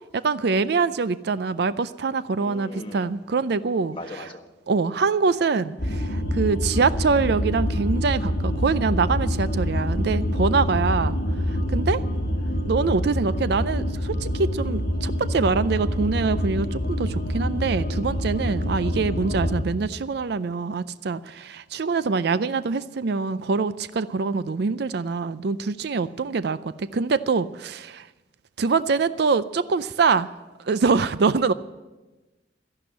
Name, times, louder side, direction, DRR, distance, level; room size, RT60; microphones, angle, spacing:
voice 1, 0.1-4.0 4.7-11.2 11.5-12.0 12.7-28.1 28.6-30.3 30.7-31.5, right 4 dB, 60° right, 15 dB, 0.5 m, -24 dB
voice 2, 2.4-3.1 3.9-4.4, left 2 dB, 30° left, 3 dB, 1.4 m, -38 dB
sound 1, 5.8-19.6, equal, 55° left, 1.5 m, -26 dB
13.0 x 11.5 x 7.9 m, 1.1 s
head